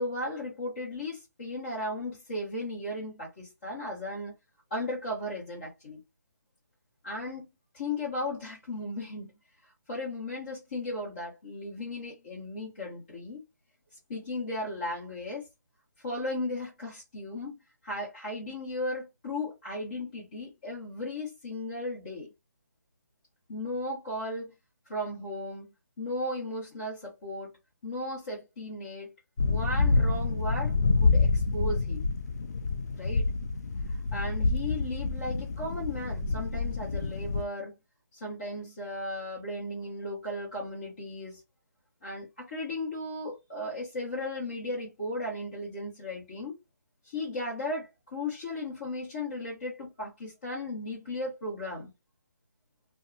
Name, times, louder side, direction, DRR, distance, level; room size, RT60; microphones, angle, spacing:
voice 1, 0.0-4.3 4.7-6.0 7.0-7.5 7.7-9.3 9.9-13.4 14.1-15.5 16.0-17.5 17.8-22.3 23.5-24.5 24.9-27.5 27.8-29.1 29.4-32.1 32.9-33.3 34.1-37.7 38.1-41.4 42.0-46.5 47.0-51.9, left 1 dB, 30° left, 1.2 m, -36 dB
sound 1, 29.4-37.4, left 3 dB, 65° left, 0.4 m, -27 dB
2.6 x 2.3 x 2.5 m
hypercardioid pair, 170°, 10 cm